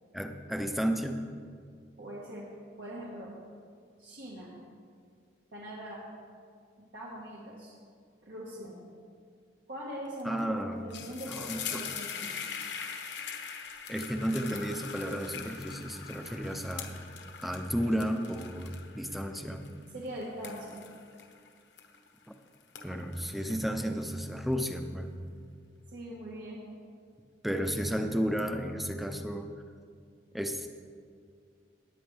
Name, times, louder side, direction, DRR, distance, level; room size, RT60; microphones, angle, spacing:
voice 1, 0.1-1.2 10.2-10.8 11.3-11.8 13.9-17.0 17.4-19.7 22.8-25.1 27.4-29.5 30.3-30.7, equal, ahead, 6 dB, 0.6 m, -33 dB
voice 2, 2.0-2.5 2.8-3.4 4.0-4.5 5.5-6.0 6.8-7.7 8.2-8.8 9.7-12.3 19.9-20.8 25.9-26.6, right 1 dB, 75° right, -5 dB, 1.6 m, -41 dB
sound 1, 10.2-10.4 10.7-22.3 22.6-24.5, left 7 dB, 70° left, 1.0 m, -42 dB
18.0 x 9.2 x 3.4 m, 2.2 s
head